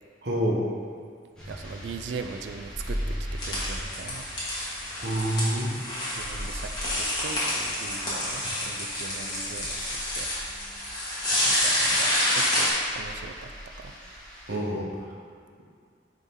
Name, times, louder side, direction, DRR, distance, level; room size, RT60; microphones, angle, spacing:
voice 1, 0.2-0.6 5.0-5.7 8.4-8.5 14.5-15.1, right 1 dB, 70° right, -3 dB, 1.1 m, -27 dB
sound 1, 1.3-14.5, equal, 5° left, 1.5 m, -40 dB
voice 2, 1.5-4.3 6.1-9.9 10.1-10.3 11.4-13.5 13.8-14.0, right 5 dB, 85° right, 7 dB, 0.4 m, -40 dB
sound 2, 3.4-12.7, left 1 dB, 20° left, 1.7 m, -28 dB
10.0 x 3.7 x 3.6 m, 2.1 s
head